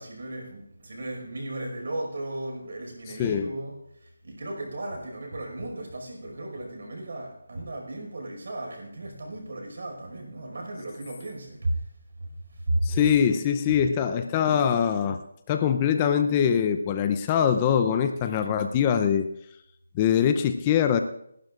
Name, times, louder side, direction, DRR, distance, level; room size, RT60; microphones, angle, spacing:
voice 1, 0.0-11.8 12.2-12.9, right 1 dB, 60° right, 1 dB, 5.3 m, -34 dB
voice 2, 3.2-3.5 12.8-15.2 15.5-19.3 19.9-21.0, left 8 dB, 20° left, 8 dB, 0.6 m, -23 dB
28.0 x 12.0 x 2.5 m, 0.76 s
figure-of-eight pair, 160°, 0 cm